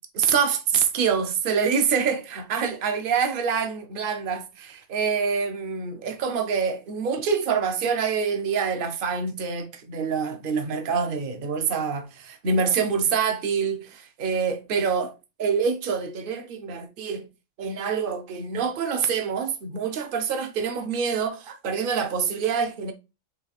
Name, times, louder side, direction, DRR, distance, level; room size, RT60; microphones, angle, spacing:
voice 1, 0.1-15.1 15.4-17.3 17.6-22.9, right 6 dB, 50° right, 0.8 m, -26 dB
4.8 x 3.2 x 3.3 m
omnidirectional pair, 1.3 m